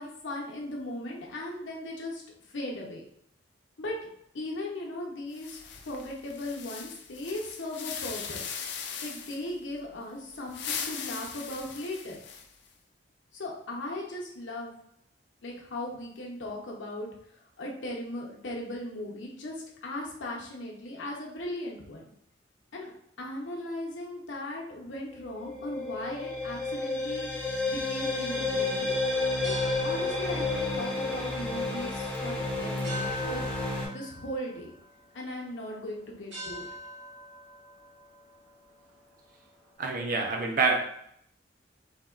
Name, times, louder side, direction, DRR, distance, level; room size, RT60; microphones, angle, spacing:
voice 1, 0.0-2.2 2.5-3.0 3.8-3.9 4.3-8.5 9.0-12.2 13.3-14.7 15.4-22.0 22.7-22.9 23.2-29.0 29.4-33.4 33.9-34.7 35.1-36.6, left 1 dB, 85° left, -2 dB, 0.7 m, -38 dB
sound 1, 5.3-9.5 10.3-12.7, left 6 dB, 65° left, 0.4 m, -39 dB
sound 2, 25.1-33.9, left 2 dB, 5° left, 0.4 m, -31 dB
sound 3, 29.3-39.7, left 1 dB, 75° right, 1.0 m, -45 dB
voice 2, 39.8-40.8, right 4 dB, 45° right, 1 dB, 0.5 m, -26 dB
3.4 x 2.2 x 2.4 m, 0.70 s
head